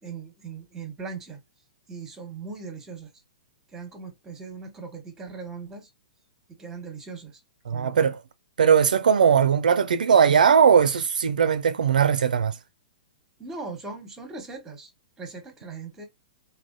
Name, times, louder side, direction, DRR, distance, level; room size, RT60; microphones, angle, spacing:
voice 1, 0.0-1.4 1.9-3.1 3.7-5.9 6.5-7.4 7.7-8.2 13.4-14.9 15.2-16.1, right 4 dB, 10° right, 1.1 m, -39 dB
voice 2, 7.7-8.2 8.6-12.5, right 7 dB, 85° right, 0.4 m, -19 dB
3.3 x 2.2 x 2.5 m
hypercardioid pair, 135°, 4 cm